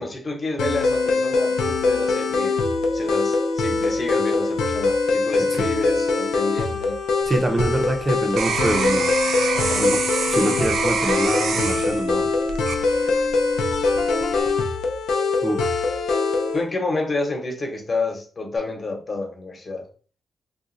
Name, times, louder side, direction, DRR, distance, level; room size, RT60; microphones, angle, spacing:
voice 1, 0.0-2.6 2.9-7.0 9.6-9.9 16.5-19.8, left 3 dB, 40° left, 2 dB, 1.1 m, -29 dB
sound 1, 0.6-16.6, left 3 dB, 90° left, 0.5 m, -22 dB
sound 2, 7.2-13.4 13.9-14.4, right 5 dB, 80° right, 0.4 m, -27 dB
voice 2, 7.3-9.1 9.8-10.0 10.3-12.3 15.4-15.7, right 1 dB, 25° right, 3 dB, 0.7 m, -24 dB
2.5 x 2.3 x 4.0 m, 0.40 s
cardioid pair, 70°, 0 cm